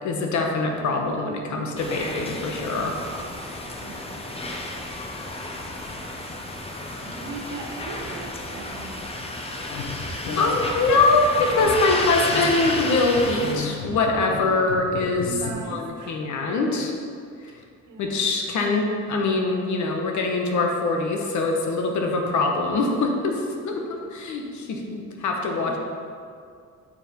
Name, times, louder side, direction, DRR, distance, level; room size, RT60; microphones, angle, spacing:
voice 1, 0.0-3.0 10.4-15.4 15.7-16.9 18.0-23.8 24.1-25.8, left 3 dB, 70° left, 2 dB, 1.2 m, -23 dB
sound 1, 1.8-13.5, left 2 dB, 20° left, 0.9 m, -32 dB
voice 2, 7.0-8.9 15.2-16.5 17.9-18.1 23.7-23.8 25.6-25.8, right 3 dB, 80° right, 0 dB, 1.3 m, -38 dB
sound 2, 9.7-15.5, left 4 dB, 90° left, 1.2 m, -34 dB
7.2 x 4.5 x 5.3 m, 2.3 s
cardioid pair, 90°, 30 cm